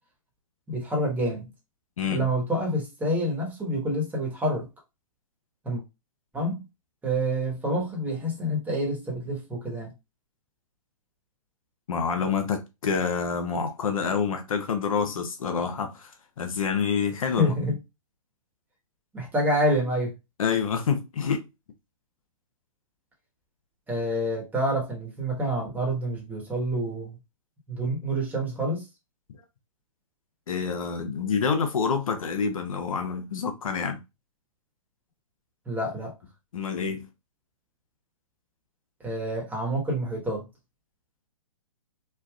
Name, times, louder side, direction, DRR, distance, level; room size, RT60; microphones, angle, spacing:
voice 1, 0.7-1.5 2.1-4.7 5.6-5.8 6.3-6.6 7.0-9.9 17.4-17.8 19.1-20.1 23.9-27.2 27.7-28.9 35.7-36.1 39.0-40.4, equal, 10° right, 1.2 m, -27 dB
voice 2, 2.0-2.3 11.9-16.1 16.4-17.7 20.4-21.4 30.5-34.0 36.5-37.1, left 6 dB, 70° left, 0.8 m, -27 dB
3.4 x 2.4 x 2.3 m
hypercardioid pair, 125°, 18 cm